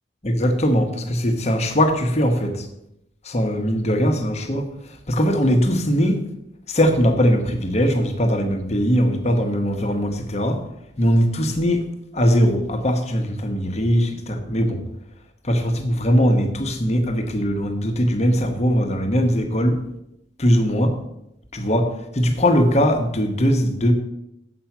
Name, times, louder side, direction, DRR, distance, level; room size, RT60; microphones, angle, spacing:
voice 1, 0.2-2.7 3.2-6.2 6.7-10.6 11.0-11.8 12.1-14.8 15.4-19.8 20.4-21.0 21.5-23.9, equal, 35° left, 5 dB, 1.1 m, -20 dB
7.9 x 5.8 x 5.9 m, 0.82 s
head